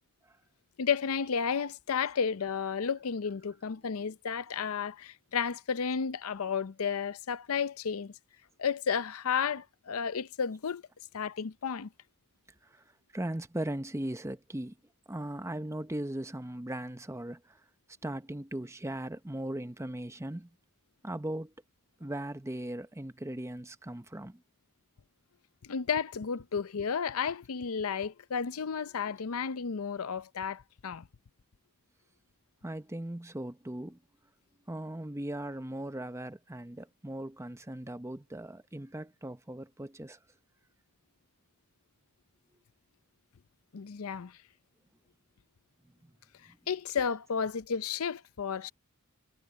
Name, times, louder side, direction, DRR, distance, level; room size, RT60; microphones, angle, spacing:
voice 1, 0.8-8.1 8.6-10.8 11.1-11.9 25.6-31.1 43.7-44.3 46.7-48.7, left 6 dB, 75° left, 0.6 m, -32 dB
voice 2, 3.3-3.9 12.6-12.8 13.1-14.8 15.1-17.6 18.0-20.5 21.0-21.5 22.0-24.4 32.6-34.0 34.7-40.2 46.0-46.1 46.5-46.6 47.0-47.1, right 1 dB, 15° right, 0.9 m, -38 dB
head